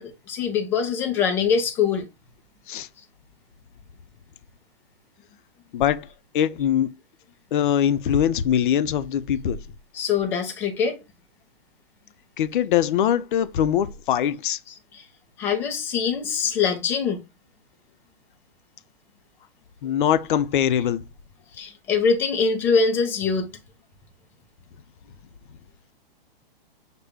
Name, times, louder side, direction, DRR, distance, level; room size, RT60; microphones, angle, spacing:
voice 1, 0.0-2.1 9.9-11.0 14.7-15.0 15.4-17.2 21.6-23.5, left 6 dB, 10° left, 0.3 m, -23 dB
voice 2, 5.7-6.1 6.3-6.9 7.5-9.6 12.4-14.6 19.8-21.0, left 10 dB, 55° left, 0.5 m, -22 dB
6.5 x 2.2 x 3.5 m
hypercardioid pair, 140°, 30 cm